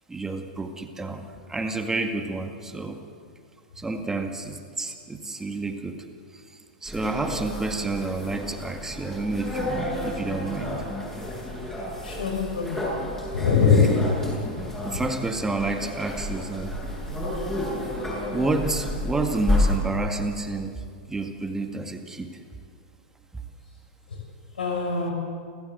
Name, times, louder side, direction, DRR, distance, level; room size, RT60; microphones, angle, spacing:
voice 1, 0.1-3.0 3.8-6.0 6.3-10.8 14.8-16.8 18.3-20.8 21.1-22.4, right 3 dB, 10° right, 4 dB, 2.0 m, -30 dB
sound 1, 6.9-19.8, left 1 dB, 10° left, 7.9 m, -31 dB
voice 2, 12.0-12.9 13.3-13.9 24.6-25.1, left 5 dB, 90° left, 2 dB, 6.3 m, -22 dB
28.5 x 15.0 x 8.1 m, 2.2 s
hypercardioid pair, 115°, 5 cm